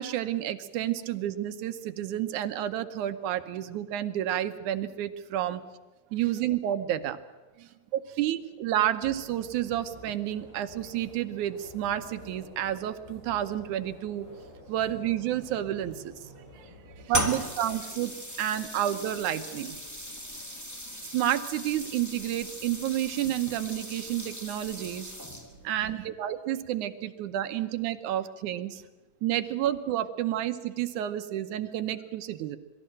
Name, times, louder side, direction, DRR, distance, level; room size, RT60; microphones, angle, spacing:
voice 1, 0.0-5.6 6.1-7.2 7.9-14.3 14.7-16.3 17.1-18.1 18.4-19.8 21.1-25.1 25.6-28.8 29.2-32.6, right 12 dB, 80° right, 9 dB, 2.3 m, -30 dB
voice 2, 7.6-8.2 16.4-17.1 17.7-17.8 18.6-18.7 25.5-26.1 28.1-28.2, right 10 dB, 55° right, 6 dB, 1.8 m, -57 dB
sound 1, 9.0-17.1, left 1 dB, 75° left, 8.9 m, -50 dB
sound 2, 17.1-25.7, equal, 5° left, 1.5 m, -37 dB
23.0 x 13.5 x 8.8 m, 1.2 s
omnidirectional pair, 3.4 m